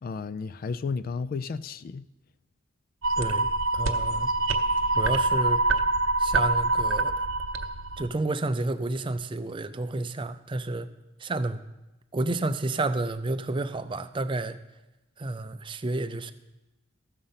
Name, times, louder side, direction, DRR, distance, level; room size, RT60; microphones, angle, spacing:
voice 1, 0.0-2.1, left 5 dB, 45° left, 0.3 m, -33 dB
sound 1, 3.0-8.1, right 3 dB, 85° right, 0.8 m, -25 dB
voice 2, 3.2-4.3 4.9-5.6 6.2-7.1 8.0-10.9 11.2-11.6 12.1-14.6 15.2-16.3, right 2 dB, 25° right, 0.5 m, -30 dB
14.5 x 6.6 x 5.6 m
head